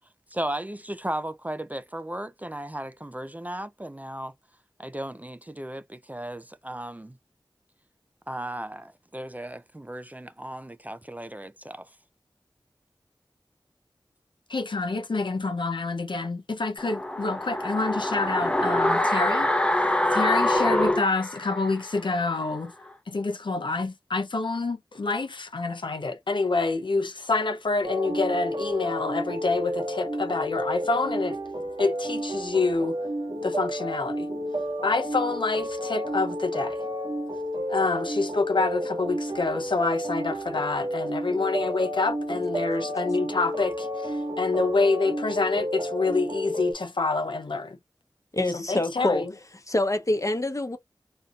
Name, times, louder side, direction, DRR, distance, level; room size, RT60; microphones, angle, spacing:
voice 1, 0.3-4.3 4.8-7.2 8.3-11.8, right 1 dB, 20° right, 0.4 m, -35 dB
voice 2, 14.5-19.5 20.1-22.7 23.1-31.4 31.8-33.0 33.4-34.3 34.8-36.8 37.7-47.8 48.5-49.3, left 3 dB, 75° left, 0.6 m, -27 dB
sound 1, 16.8-21.9 22.2-22.3, left 1 dB, 10° left, 0.9 m, -24 dB
sound 2, 27.8-46.7, equal, 70° right, 1.4 m, -31 dB
voice 3, 48.3-49.2 49.7-50.8, left 2 dB, 40° left, 1.0 m, -25 dB
4.1 x 2.5 x 2.4 m
wide cardioid pair, 40°, 8 cm